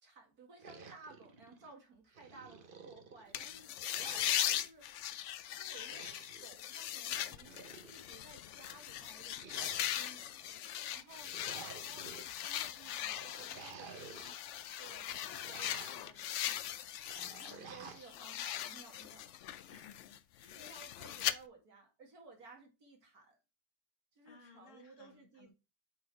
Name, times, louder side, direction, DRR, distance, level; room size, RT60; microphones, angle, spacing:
voice 1, 0.0-6.1 6.4-7.6 7.9-19.3 19.6-19.7 20.6-23.4 24.1-25.5, right 3 dB, 60° right, 2.7 m, -57 dB
sound 1, 0.6-1.7 2.1-3.4 3.9-4.7 5.7-6.5 7.3-8.2 9.3-10.3 11.1-12.3 13.1-14.4 14.8-16.1 17.0-18.1, right 5 dB, 40° right, 0.8 m, -52 dB
sound 2, 3.3-17.6 17.9-21.3, left 11 dB, 80° left, 0.6 m, -40 dB
voice 2, 17.1-18.0 19.7-20.6 24.2-25.5, left 5 dB, 50° left, 1.6 m, -60 dB
7.7 x 4.1 x 4.8 m
omnidirectional pair, 1.8 m